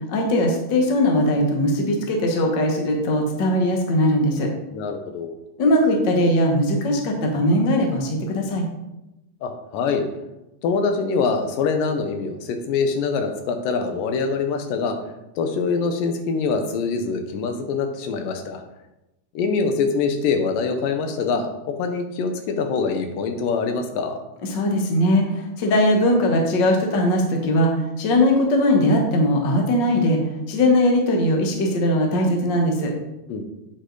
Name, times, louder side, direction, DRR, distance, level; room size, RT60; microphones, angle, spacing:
voice 1, 0.1-4.5 5.6-8.6 24.5-30.2 30.5-32.9, left 1 dB, 65° left, 2 dB, 1.1 m, -20 dB
voice 2, 4.7-5.3 9.4-10.0 10.6-15.0 15.4-18.6 19.3-24.2 33.3-33.5, left 4 dB, 80° left, 6 dB, 2.5 m, -24 dB
8.4 x 5.4 x 3.8 m, 0.94 s
omnidirectional pair, 3.9 m